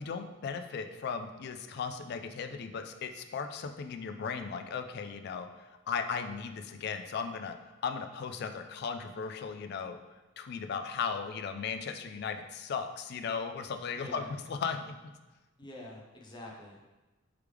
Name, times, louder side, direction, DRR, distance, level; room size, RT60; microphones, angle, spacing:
voice 1, 0.0-7.6 7.8-10.0 10.4-14.9, left 6 dB, 55° left, 7 dB, 0.3 m, -36 dB
voice 2, 13.9-14.3 15.6-16.8, left 1 dB, 25° left, -2 dB, 0.8 m, -46 dB
4.7 x 3.3 x 3.4 m, 1.1 s
head